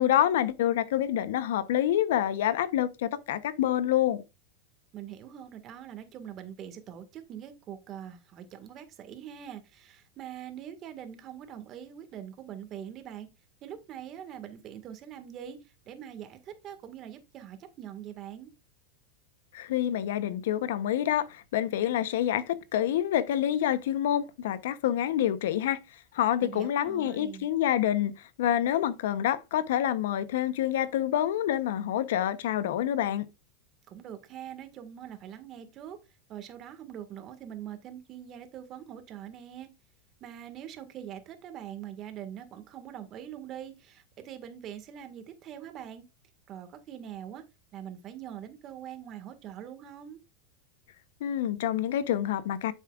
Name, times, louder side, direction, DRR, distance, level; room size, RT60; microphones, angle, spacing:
voice 1, 0.0-4.2 19.5-25.8 26.1-28.1 28.4-33.3 51.2-52.7, left 11 dB, 75° left, 0.8 m, -27 dB
voice 2, 4.9-13.3 13.6-15.6 15.9-18.5 26.4-27.5 33.9-36.0 36.3-39.7 40.2-46.0 46.5-47.4 47.7-50.2, right 10 dB, 40° right, 1.8 m, -43 dB
9.4 x 7.3 x 2.5 m
supercardioid pair, 120°, 0 cm